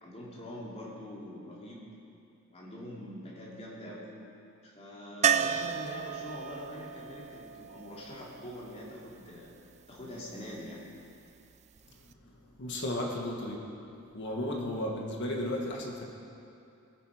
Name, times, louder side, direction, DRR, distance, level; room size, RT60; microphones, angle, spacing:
voice 1, 0.0-1.9 2.5-4.2 4.6-9.5 9.9-10.8, left 1 dB, 30° left, -5 dB, 2.8 m, -44 dB
sound 1, 5.2-9.1 11.8-11.9 12.1-12.2, right 8 dB, 35° right, 0.3 m, -32 dB
voice 2, 12.6-13.6 14.1-16.1, left 1 dB, 60° left, 0 dB, 1.6 m, -34 dB
20.0 x 7.6 x 5.0 m, 2.7 s
head